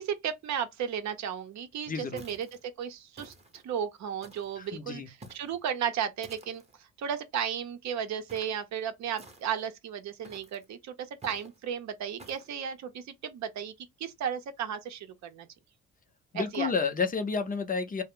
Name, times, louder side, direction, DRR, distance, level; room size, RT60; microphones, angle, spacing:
voice 1, 0.0-2.5 2.8-6.6 7.0-10.9 11.2-13.7 14.0-15.5 16.3-16.7, right 8 dB, 65° right, 0.6 m, -34 dB
voice 2, 1.9-2.2 4.6-5.1 16.3-18.0, left 5 dB, 30° left, 0.5 m, -30 dB
sound 1, 2.2-2.6 3.2-3.7 4.2-4.6 5.2-5.6 6.2-6.8 8.3-8.6 9.2-9.7 10.2-10.7 11.2-11.6 12.2-12.5, right 2 dB, 20° right, 0.7 m, -52 dB
2.4 x 2.0 x 3.5 m
cardioid pair, 90°, 30 cm